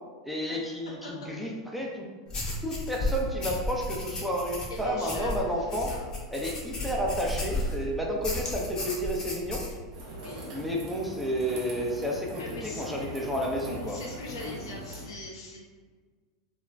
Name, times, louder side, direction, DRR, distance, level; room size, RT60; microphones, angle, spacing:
voice 1, 0.2-2.1 2.6-5.9 6.3-9.6 10.5-14.0, equal, ahead, -2 dB, 0.5 m, -31 dB
sound 1, 2.3-7.8 8.2-9.7, left 1 dB, 30° left, 0.7 m, -33 dB
voice 2, 4.7-6.0 10.1-10.6 12.4-13.2 13.7-15.6, left 1 dB, 80° left, -2 dB, 0.7 m, -42 dB
sound 2, 9.9-15.1, equal, 45° right, 0.8 m, -41 dB
2.5 x 2.1 x 3.1 m, 1.5 s
hypercardioid pair, 105°, 2 cm